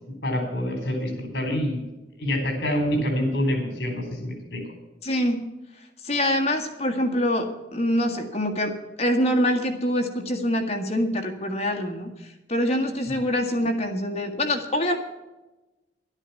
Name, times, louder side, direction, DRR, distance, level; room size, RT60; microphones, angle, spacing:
voice 1, 0.2-1.8 2.2-4.6, left 1 dB, 60° left, 5 dB, 4.0 m, -26 dB
voice 2, 5.0-5.5 6.0-15.0, left 1 dB, 35° left, 4 dB, 1.6 m, -25 dB
12.0 x 9.9 x 7.0 m, 1.1 s
head